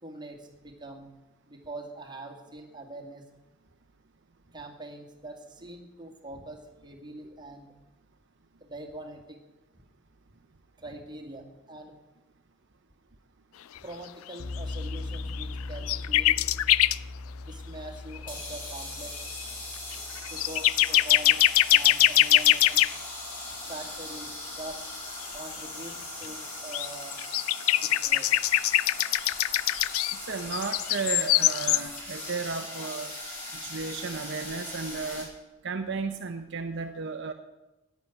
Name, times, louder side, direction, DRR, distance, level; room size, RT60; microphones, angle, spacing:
voice 1, 0.0-1.1 1.5-3.3 4.5-7.7 8.6-9.4 10.8-12.0 13.8-16.4 17.2-19.1 20.3-22.8 23.7-24.8 25.3-27.2 27.7-28.3, right 2 dB, 20° right, 0 dB, 2.1 m, -43 dB
sound 1, 14.4-23.3, left 2 dB, 70° left, 1.2 m, -41 dB
sound 2, 14.7-15.4 15.9-17.0 18.2-18.4 19.4-19.5 19.9-22.9 26.7-26.9 27.1-30.2 30.5-31.8, left 15 dB, 90° left, 0.4 m, -22 dB
sound 3, 18.3-35.2, left 2 dB, 40° left, 6.5 m, -39 dB
voice 2, 30.1-33.1 33.5-35.3 35.6-37.3, right 4 dB, 60° right, 6 dB, 0.7 m, -34 dB
11.0 x 9.5 x 9.0 m, 1.0 s
head